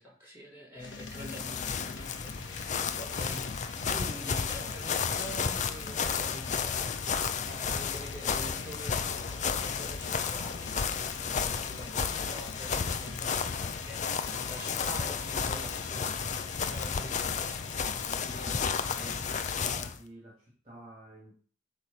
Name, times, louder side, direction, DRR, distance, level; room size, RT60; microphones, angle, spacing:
voice 1, 0.0-13.5 13.8-16.4 16.6-17.9, equal, 10° right, -4 dB, 3.8 m, -46 dB
sound 1, 0.8-19.8, left 3 dB, 80° left, 1.0 m, -45 dB
sound 2, 0.9-20.0, left 6 dB, 40° left, 0.5 m, -33 dB
sound 3, 10.1-10.7 14.0-16.8, right 3 dB, 10° left, 3.1 m, -55 dB
voice 2, 18.0-21.3, right 1 dB, 30° right, -4 dB, 1.9 m, -49 dB
8.3 x 3.2 x 5.3 m, 0.43 s
head